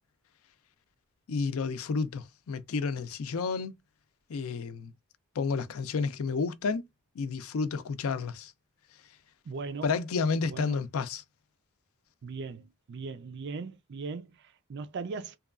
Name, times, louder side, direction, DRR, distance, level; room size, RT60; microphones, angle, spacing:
voice 1, 1.3-3.7 4.3-4.9 5.4-6.9 7.2-8.5 9.8-11.2, left 4 dB, 70° left, 0.4 m, -31 dB
voice 2, 9.4-9.9 10.5-10.8 12.2-15.4, right 4 dB, 50° right, 0.4 m, -39 dB
2.8 x 2.3 x 2.3 m
head